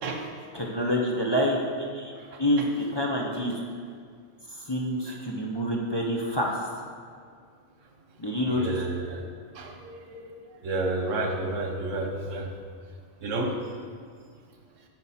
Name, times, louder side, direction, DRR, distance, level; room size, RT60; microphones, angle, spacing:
voice 1, 0.5-2.1 2.4-3.6 4.6-6.6 8.2-8.9, equal, 25° left, -2 dB, 0.7 m, -27 dB
voice 2, 8.5-9.2 9.5-9.9 10.6-12.5 13.2-13.5, right 2 dB, 85° right, 3 dB, 1.3 m, -30 dB
9.2 x 6.0 x 4.3 m, 2.1 s
omnidirectional pair, 1.3 m